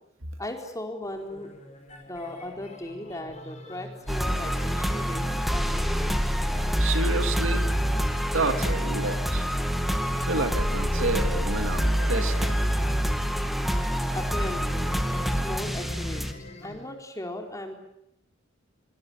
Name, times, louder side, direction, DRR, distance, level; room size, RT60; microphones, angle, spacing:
voice 1, 0.4-1.5 2.1-6.1 14.1-16.2 16.6-17.7, left 1 dB, 15° left, 3 dB, 4.4 m, -37 dB
sound 1, 1.0-16.9, left 1 dB, 35° left, 5.5 m, -43 dB
sound 2, 4.1-16.3, equal, ahead, 2.2 m, -26 dB
voice 2, 6.8-7.8 8.3-9.5 10.1-12.5, right 3 dB, 75° right, 8 dB, 2.6 m, -30 dB
25.5 x 23.5 x 8.9 m, 0.79 s
head